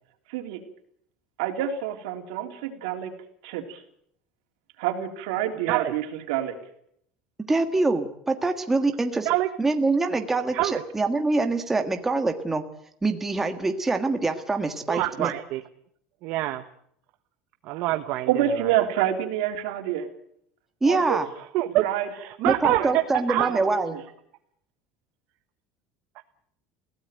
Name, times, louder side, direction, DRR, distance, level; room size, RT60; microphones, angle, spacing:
voice 1, 0.3-0.6 1.4-3.1 3.4-3.8 4.8-6.6 17.7-17.9 18.3-20.1 20.9-21.2 21.8-22.1 22.7-22.9 23.5-24.0, right 11 dB, 90° right, 6 dB, 3.4 m, -28 dB
voice 2, 7.5-9.3 9.6-12.6 13.0-15.3 20.8-21.3 22.5-24.0, right 3 dB, 10° right, 6 dB, 1.6 m, -24 dB
voice 3, 14.9-15.6 16.2-16.6 17.6-18.3 18.6-18.7 21.5-21.8 22.1-23.0 23.3-23.5 26.2-26.3, right 16 dB, 55° right, 7 dB, 1.1 m, -25 dB
21.5 x 16.5 x 9.1 m, 0.70 s
cardioid pair, 160°, 3 cm